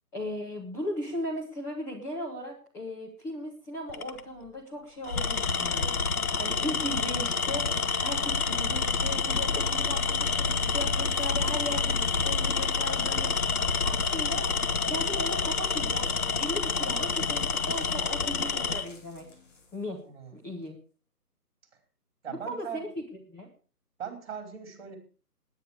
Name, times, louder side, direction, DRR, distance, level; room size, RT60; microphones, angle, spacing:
voice 1, 0.1-14.4 14.9-16.1 16.4-19.3 19.7-20.0 20.3-20.8 22.3-23.5, equal, 5° left, -5 dB, 1.4 m, -37 dB
Tools, 3.9-4.2 5.0-18.9, left 5 dB, 65° left, 1.5 m, -28 dB
sound 1, 10.9-13.9 15.9-20.1 20.6-20.7, left 3 dB, 50° left, 5.6 m, -56 dB
voice 2, 20.0-20.3 22.2-22.8 24.0-25.0, right 8 dB, 40° right, 6 dB, 5.0 m, -39 dB
19.0 x 10.5 x 5.0 m, 0.37 s
figure-of-eight pair, 155°, 48 cm